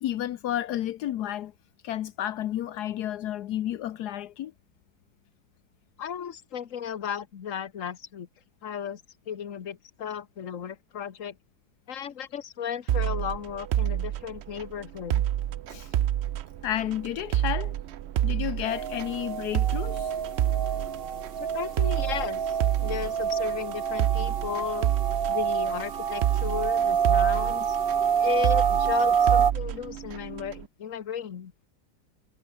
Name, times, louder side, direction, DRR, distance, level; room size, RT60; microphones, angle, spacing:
voice 1, 0.0-1.5 1.8-4.5 15.7-15.9 16.6-17.7 18.2-20.1, left 12 dB, 80° left, 1.3 m, -31 dB
voice 2, 6.0-8.3 8.6-9.0 9.3-11.4 11.9-15.2 21.4-24.9 25.3-27.8 28.2-31.5, left 8 dB, 55° left, 1.6 m, -35 dB
sound 1, 12.9-30.6, right 12 dB, 70° right, 0.6 m, -29 dB
sound 2, 18.7-29.5, right 7 dB, 45° right, 1.0 m, -27 dB
omnidirectional pair, 1.7 m